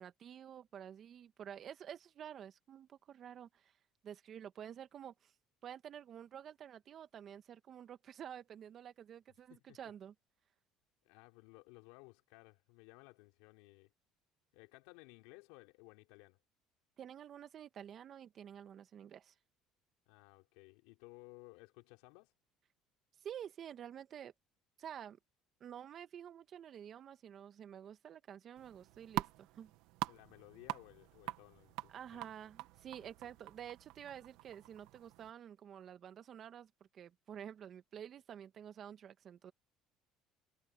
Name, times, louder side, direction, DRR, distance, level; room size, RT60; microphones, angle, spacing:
voice 1, 0.0-3.7 4.0-5.3 5.6-10.1 17.0-19.3 23.2-24.3 24.8-25.2 25.6-29.7 31.9-39.5, right 9 dB, 50° right, 1.7 m, -50 dB
voice 2, 11.0-13.9 14.5-16.4 20.1-22.3 30.1-32.3 33.0-33.3, left 26 dB, 85° left, 4.1 m, -58 dB
sound 1, 28.6-35.3, right 18 dB, 80° right, 1.9 m, -45 dB
supercardioid pair, 90°, 0 cm